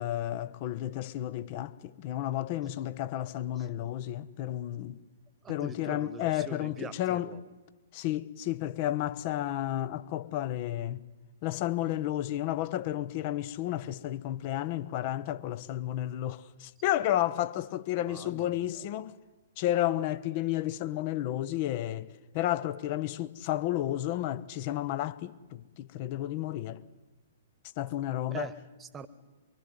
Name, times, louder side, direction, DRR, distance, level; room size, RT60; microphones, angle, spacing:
voice 1, 0.0-5.0 5.5-7.3 7.9-11.0 11.4-19.1 19.6-22.1 22.3-26.8 27.8-28.5, left 13 dB, 40° left, 1.0 m, -32 dB
voice 2, 5.4-7.4 17.9-18.8 28.3-29.1, right 5 dB, 15° right, 1.4 m, -43 dB
24.0 x 24.0 x 9.4 m
figure-of-eight pair, 115°, 0 cm